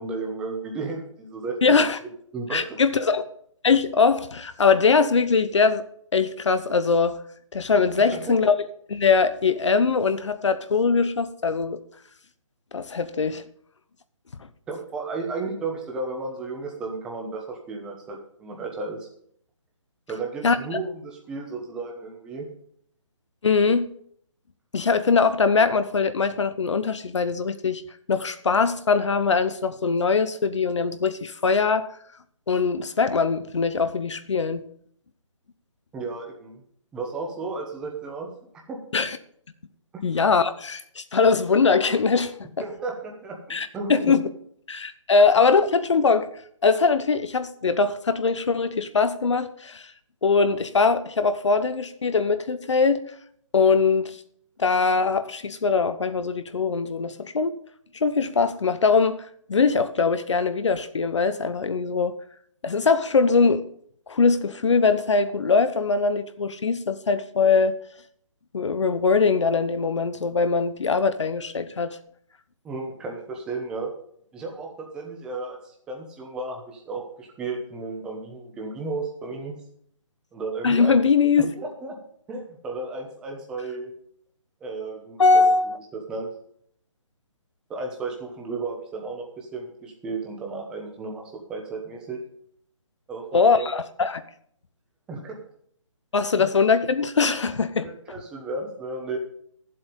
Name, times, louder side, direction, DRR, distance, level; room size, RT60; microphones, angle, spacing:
voice 1, 0.0-1.8 2.3-3.1 8.0-8.4 14.7-19.1 20.1-22.5 35.9-36.6 36.9-38.3 38.7-38.8 42.6-44.2 72.6-73.9 74.3-79.5 80.3-81.0 81.4-82.0 82.3-83.9 84.6-85.4 85.9-86.3 87.7-91.2 91.5-92.2 93.1-93.7 95.1-95.4 96.4-96.5 97.8-99.2, right 3 dB, 5° right, 1.0 m, -33 dB
voice 2, 1.6-2.0 2.5-3.2 3.6-5.8 6.1-7.2 7.5-8.5 8.9-11.8 12.7-13.4 20.4-20.6 23.4-23.8 24.7-27.8 28.1-31.9 32.5-34.6 38.9-39.2 40.0-42.3 43.5-44.2 44.7-46.3 46.6-49.9 50.2-53.0 53.5-54.2 54.6-57.6 58.0-59.2 59.5-62.2 62.6-63.6 64.1-67.7 68.5-72.0 80.6-81.5 85.2-85.8 93.3-94.2 96.1-97.9, left 4 dB, 65° left, 0.9 m, -21 dB
12.0 x 7.8 x 5.3 m
hypercardioid pair, 175°, 16 cm